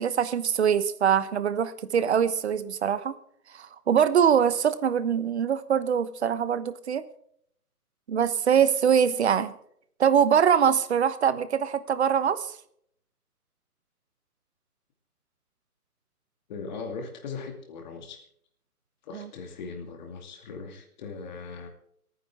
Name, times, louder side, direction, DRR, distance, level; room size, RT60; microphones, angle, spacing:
voice 1, 0.0-3.1 3.5-7.0 8.1-9.5 10.0-12.6 19.1-19.3, right 8 dB, 45° right, 14 dB, 1.1 m, -23 dB
voice 2, 16.5-18.2 19.0-21.7, left 4 dB, 30° left, 4 dB, 2.5 m, -39 dB
28.0 x 10.0 x 3.6 m, 0.66 s
hypercardioid pair, 150°, 46 cm